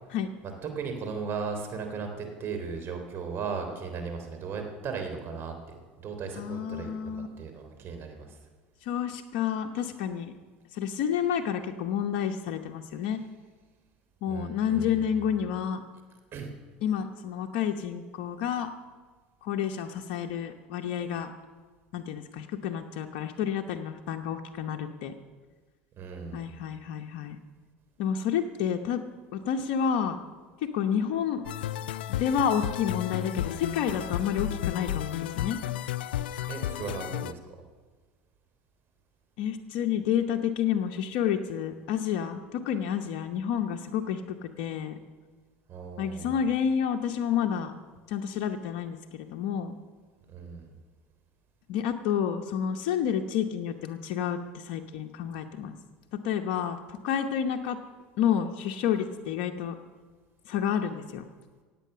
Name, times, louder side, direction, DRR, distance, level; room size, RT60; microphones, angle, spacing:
voice 1, 0.4-5.5 6.0-6.9 7.4-8.4 14.3-14.9 16.3-16.5 26.0-26.5 36.5-37.6 45.7-46.4 50.3-50.7, right 5 dB, 45° right, 4 dB, 3.5 m, -36 dB
voice 2, 6.4-7.3 8.8-10.3 10.7-13.2 14.2-15.8 16.8-18.7 19.4-21.3 21.9-25.1 26.3-27.4 28.0-29.0 29.3-30.2 30.6-31.5 32.1-35.6 39.4-45.0 46.0-47.7 48.1-49.8 51.7-55.7 56.1-57.8 58.2-59.7 60.4-61.3, left 8 dB, 65° left, 4 dB, 1.0 m, -29 dB
sound 1, 31.4-37.3, left 12 dB, 85° left, 0.5 m, -33 dB
17.0 x 8.6 x 6.9 m, 1.4 s
hypercardioid pair, 90°, 5 cm